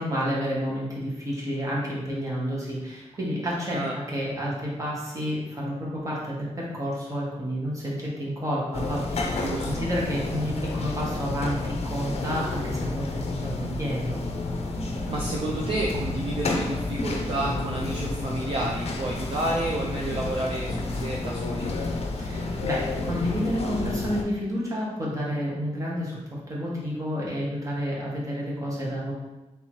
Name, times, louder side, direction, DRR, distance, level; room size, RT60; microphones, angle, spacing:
voice 1, 0.0-3.8 4.1-14.2 22.2-26.2 26.5-29.1, equal, 25° right, -5 dB, 1.2 m, -30 dB
sound 1, 8.7-24.2, left 3 dB, 60° left, 0.5 m, -30 dB
voice 2, 9.3-9.9 14.7-21.7, right 2 dB, 50° right, -3 dB, 0.5 m, -31 dB
3.5 x 2.8 x 4.4 m, 1.1 s
wide cardioid pair, 170°, 12 cm